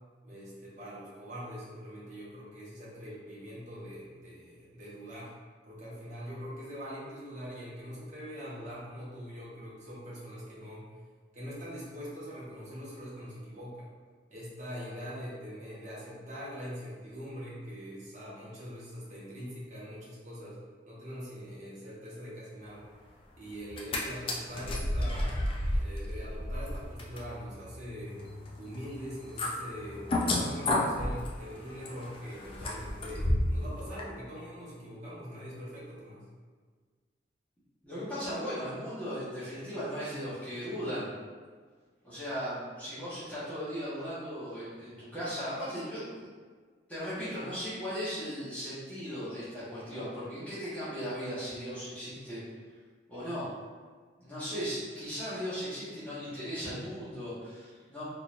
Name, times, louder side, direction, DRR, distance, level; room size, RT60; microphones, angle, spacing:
voice 1, 0.2-5.3 5.7-10.9 11.3-13.9 14.3-20.6 20.9-22.8 23.4-28.2 28.6-36.3, equal, 40° right, -8 dB, 1.1 m, -43 dB
sound 1, 23.6-24.0 24.3-33.6 34.0-34.1, left 1 dB, 30° left, 0.4 m, -32 dB
voice 2, 37.8-41.1 42.0-46.3 46.9-52.4 53.1-53.5 54.2-58.0, equal, 10° left, -13 dB, 1.2 m, -37 dB
3.8 x 3.0 x 2.5 m, 1.5 s
head